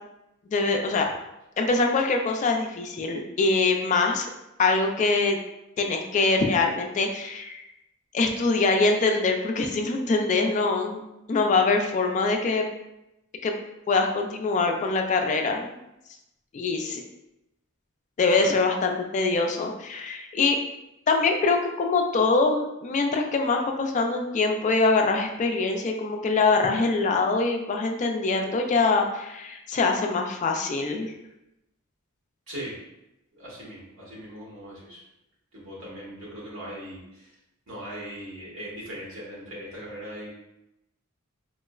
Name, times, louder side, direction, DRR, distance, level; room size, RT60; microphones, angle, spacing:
voice 1, 0.5-1.1 1.6-4.3 4.6-5.4 5.8-7.6 8.1-11.0 11.3-12.6 13.4-13.5 13.9-15.8 16.5-17.0 18.2-20.6 21.1-31.1, left 3 dB, 35° left, 3 dB, 0.3 m, -24 dB
voice 2, 32.5-32.8 33.3-35.0 35.5-37.3 37.7-40.3, equal, 85° right, -6 dB, 1.3 m, -39 dB
4.3 x 2.0 x 2.3 m, 0.89 s
head